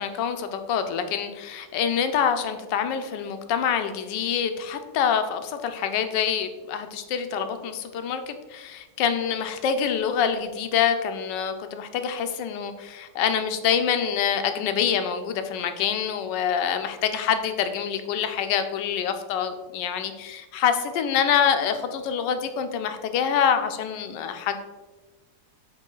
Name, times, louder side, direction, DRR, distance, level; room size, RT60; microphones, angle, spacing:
voice 1, 0.0-24.6, left 8 dB, 80° left, 8 dB, 1.2 m, -26 dB
8.2 x 3.0 x 3.8 m, 1.2 s
omnidirectional pair, 1.9 m